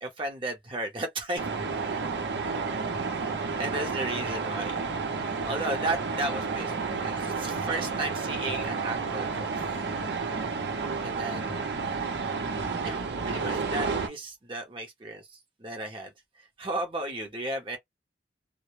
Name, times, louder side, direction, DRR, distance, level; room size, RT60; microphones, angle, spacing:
voice 1, 0.0-1.5 3.1-3.2 3.6-4.8 5.4-9.5 11.0-11.9 12.8-17.8, right 2 dB, 30° right, 0.6 m, -34 dB
sound 1, 1.4-14.1, right 4 dB, 75° right, 0.6 m, -31 dB
2.1 x 2.0 x 3.0 m
head